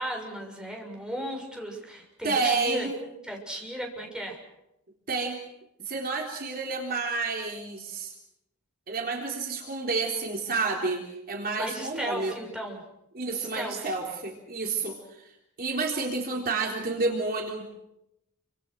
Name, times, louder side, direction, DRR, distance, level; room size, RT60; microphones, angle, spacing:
voice 1, 0.0-4.4 11.6-12.8 13.4-13.9, right 1 dB, 5° right, 0 dB, 6.8 m, -35 dB
voice 2, 2.2-2.9 5.1-5.4 5.8-8.1 8.9-12.3 13.1-15.3 15.6-17.6, right 3 dB, 45° right, 1 dB, 3.8 m, -30 dB
29.0 x 26.5 x 6.5 m, 0.85 s
head